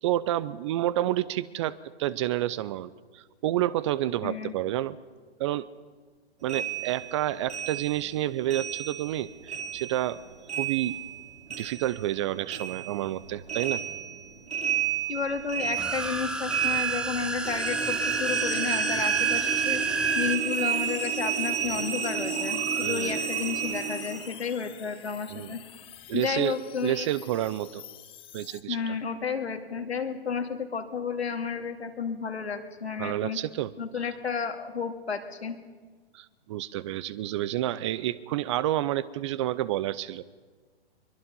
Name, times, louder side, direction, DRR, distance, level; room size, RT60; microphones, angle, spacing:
voice 1, 0.0-5.0 5.4-5.7 6.4-10.2 10.5-11.0 11.6-13.8 22.8-23.2 25.3-25.5 26.1-27.8 28.3-29.0 33.0-33.7 36.1-40.2, right 13 dB, 30° right, 19 dB, 0.6 m, -29 dB
voice 2, 4.2-4.5 15.1-19.8 20.1-25.6 26.1-27.1 28.7-33.4 33.8-35.6, left 6 dB, 75° left, 5 dB, 2.6 m, -32 dB
sound 1, 6.5-9.2 9.5-12.2 12.5-24.3, right 8 dB, 85° right, 4.7 m, -31 dB
sound 2, 15.6-20.4, right 2 dB, 5° right, 0.8 m, -31 dB
sound 3, 20.5-28.6, left 11 dB, 15° left, 1.1 m, -45 dB
23.0 x 22.0 x 5.4 m, 1.4 s
figure-of-eight pair, 125°, 32 cm